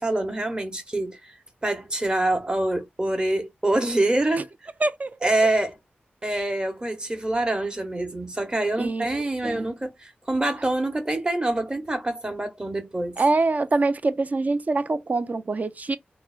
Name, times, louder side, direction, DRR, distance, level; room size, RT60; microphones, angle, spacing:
voice 1, 0.0-1.4 1.6-4.5 5.2-5.8 6.2-13.2, right 1 dB, 25° right, 0.9 m, -25 dB
voice 2, 4.8-5.3 8.8-9.1 9.4-9.7 13.2-16.0, right 3 dB, 45° right, 0.4 m, -24 dB
3.6 x 2.1 x 2.3 m
wide cardioid pair, 75°, 4 cm